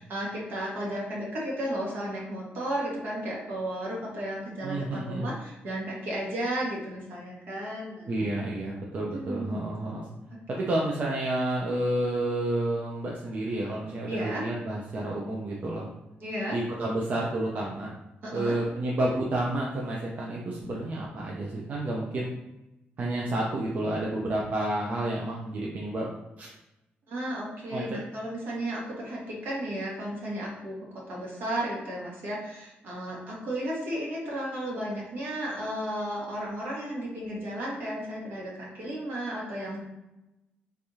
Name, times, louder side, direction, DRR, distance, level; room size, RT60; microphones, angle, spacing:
voice 1, 0.0-8.1 9.1-9.9 14.1-14.4 16.2-16.6 18.2-18.5 27.1-30.8 31.1-39.8, right 1 dB, 70° right, -4 dB, 1.4 m, -34 dB
voice 2, 4.6-5.3 8.1-10.1 10.5-15.9 16.5-17.9 18.3-22.3 23.0-26.1 26.4-26.5 27.7-28.0, right 1 dB, 45° right, -3 dB, 0.6 m, -30 dB
3.5 x 3.3 x 2.7 m, 0.94 s
cardioid pair, 110°, 4 cm